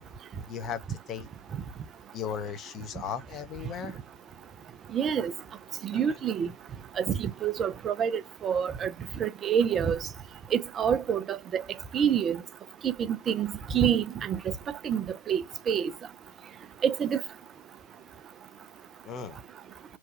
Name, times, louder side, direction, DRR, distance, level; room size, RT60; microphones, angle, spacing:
voice 1, 0.4-1.3 2.1-4.0 5.9-6.2 19.0-19.4, left 7 dB, 30° left, 0.6 m, -37 dB
voice 2, 4.9-5.3 5.8-6.5 7.0-8.9 9.2-10.0 10.5-11.6 11.9-12.4 12.8-14.5 14.8-15.9 16.8-17.2, right 8 dB, 25° right, 0.4 m, -27 dB
3.0 x 2.2 x 2.5 m
figure-of-eight pair, 90°, 0 cm